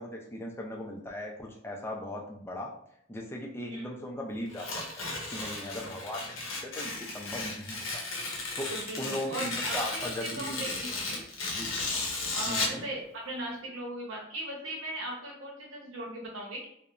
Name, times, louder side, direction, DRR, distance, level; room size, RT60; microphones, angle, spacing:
voice 1, 0.0-2.7 3.1-5.1 5.3-8.0 8.6-8.7 9.0-11.0 11.5-11.7 12.4-12.9, left 1 dB, 10° left, 0 dB, 0.4 m, -38 dB
Tearing, 4.5-12.8, left 3 dB, 75° left, 0.6 m, -35 dB
voice 2, 8.5-11.2 12.3-16.7, right 1 dB, 75° right, -1 dB, 0.8 m, -38 dB
2.8 x 2.1 x 2.4 m, 0.72 s
head